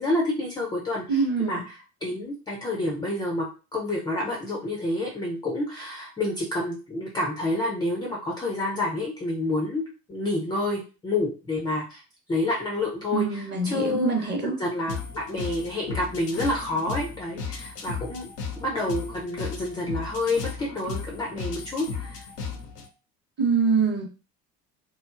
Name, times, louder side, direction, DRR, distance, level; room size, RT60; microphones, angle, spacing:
voice 1, 0.0-12.0 12.3-18.3 18.6-22.3, left 2 dB, 10° left, -2 dB, 0.3 m, -29 dB
voice 2, 1.1-1.6 13.1-14.6 23.4-24.1, right 4 dB, 25° right, 2 dB, 0.7 m, -24 dB
sound 1, 14.9-22.9, left 5 dB, 85° left, 0.6 m, -35 dB
3.0 x 2.0 x 2.3 m, 0.33 s
figure-of-eight pair, 65°, 46 cm